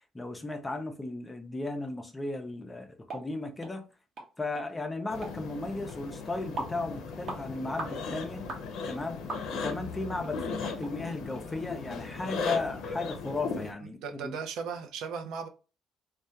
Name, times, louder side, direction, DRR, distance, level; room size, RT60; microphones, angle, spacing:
voice 1, 0.1-3.8 4.4-8.4 8.9-9.2 9.5-14.3, left 2 dB, 15° left, 0.4 m, -35 dB
sound 1, 3.1-3.2 3.6-3.7 4.2-4.3 4.5-4.7 5.2-5.4 5.9-6.0 6.6-6.8 7.3-7.4 7.8-8.0 8.5-8.6 9.3-9.7 10.2-10.3 10.8-10.9 11.4-11.5, right 2 dB, 45° right, 0.8 m, -38 dB
sound 2, 5.1-13.7, left 4 dB, 75° left, 0.5 m, -37 dB
voice 2, 14.0-15.5, right 6 dB, 80° right, 0.4 m, -36 dB
2.3 x 2.2 x 2.7 m
cardioid pair, 130°, 0 cm